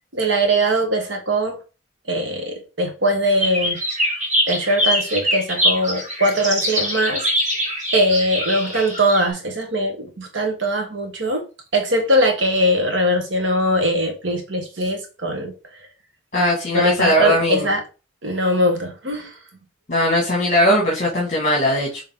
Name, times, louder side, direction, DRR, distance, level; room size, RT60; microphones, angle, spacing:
voice 1, 0.1-1.6 2.1-3.8 4.5-7.2 7.5-11.4 11.7-15.5 16.7-17.8 18.2-19.3, equal, 65° right, 1.4 m, -21 dB
sound 1, 3.4-9.3, equal, 40° right, 1.9 m, -23 dB
voice 2, 16.3-17.7 19.9-22.0, left 1 dB, 40° left, 1.9 m, -19 dB
7.6 x 3.3 x 3.7 m
head